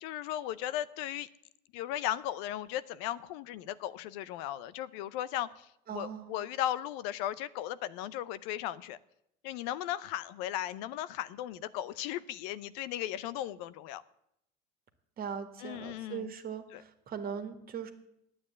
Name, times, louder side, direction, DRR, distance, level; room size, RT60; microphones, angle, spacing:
voice 1, 0.0-1.3 1.7-9.0 9.4-14.0 15.6-16.3 16.7-16.8, left 12 dB, 80° left, 0.6 m, -36 dB
voice 2, 5.9-6.3 15.2-17.9, right 7 dB, 45° right, 1.8 m, -40 dB
9.9 x 8.7 x 8.4 m
supercardioid pair, 85°, 21 cm